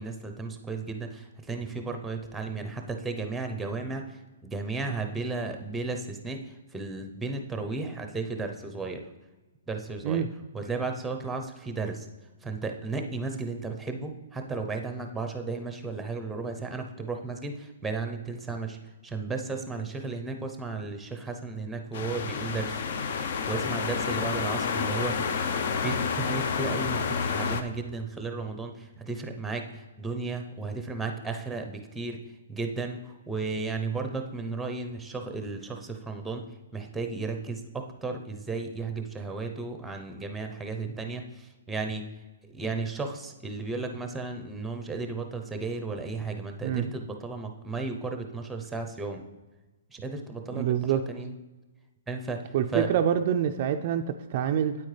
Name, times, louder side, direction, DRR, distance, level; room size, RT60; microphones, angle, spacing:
voice 1, 0.0-9.0 9.7-10.2 10.5-12.1 12.4-18.8 19.0-22.8 23.5-25.2 25.8-32.2 32.5-36.4 36.7-42.1 42.5-49.2 49.9-51.3 52.1-52.9, right 3 dB, 5° right, 5 dB, 0.7 m, -34 dB
sound 1, 21.9-27.6, left 5 dB, 55° left, 0.6 m, -29 dB
voice 2, 50.5-51.0 52.5-54.8, right 9 dB, 40° right, 6 dB, 0.3 m, -26 dB
8.7 x 8.4 x 3.3 m, 1.2 s
hypercardioid pair, 160°, 0 cm